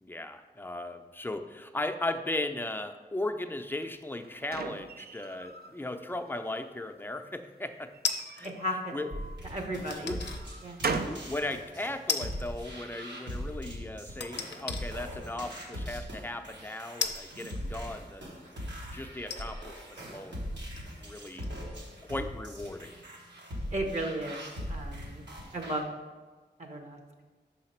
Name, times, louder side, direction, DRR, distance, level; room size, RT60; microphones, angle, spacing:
voice 1, 0.0-7.9 8.3-8.5 8.9-9.1 9.9-10.3 10.9-18.3 18.9-21.5 22.1-23.0, left 2 dB, 10° left, 6 dB, 0.5 m, -37 dB
sound 1, 3.8-5.7 6.2-6.9 7.9-9.4 10.0-11.3, right 4 dB, 60° right, 0.4 m, -38 dB
sound 2, 8.0-8.6 9.9-10.4 11.0-11.1 12.1-12.6 12.8-12.9 14.2-14.8 15.7-15.8 17.0-18.1 18.7-18.8 19.2-21.7 22.0-22.1, left 5 dB, 75° left, 0.5 m, -36 dB
voice 2, 8.4-9.0 9.5-10.2 10.6-10.9 23.7-24.4 24.7-25.2 25.5-25.9 26.6-27.2, right 1 dB, 40° right, 3 dB, 0.8 m, -35 dB
sound 3, 9.1-25.8, equal, 80° right, 1.3 m, -41 dB
5.6 x 4.0 x 4.4 m, 1.3 s
cardioid pair, 45°, 18 cm